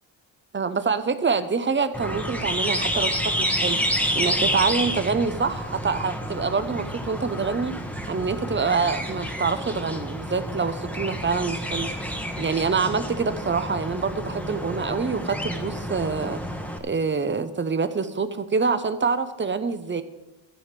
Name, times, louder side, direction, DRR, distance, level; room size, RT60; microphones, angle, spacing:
voice 1, 0.5-7.8 8.1-11.9 12.4-16.4 16.8-20.0, right 5 dB, 25° right, 11 dB, 0.7 m, -26 dB
sound 1, 1.9-16.8, equal, 5° left, 1.1 m, -29 dB
13.0 x 5.0 x 7.5 m, 0.96 s
cardioid pair, 120°, 49 cm